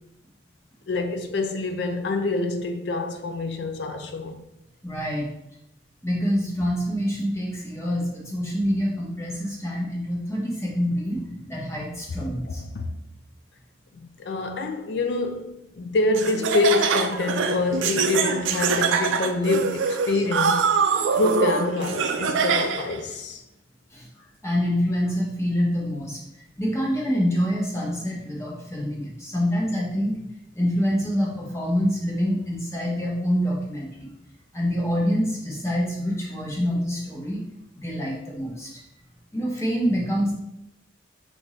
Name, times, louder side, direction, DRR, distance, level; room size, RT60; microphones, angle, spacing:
voice 1, 0.9-4.4 12.5-13.0 13.9-20.6 21.1-23.4, left 3 dB, 65° left, 0.4 m, -26 dB
voice 2, 4.8-5.3 6.0-12.6 23.9-24.1 24.4-26.2 26.6-30.2 30.5-34.1 34.5-37.4 37.8-38.7 39.3-40.3, equal, 15° left, 1.0 m, -26 dB
Laughter, 16.1-23.0, right 5 dB, 90° right, 0.4 m, -24 dB
5.9 x 2.6 x 3.1 m
head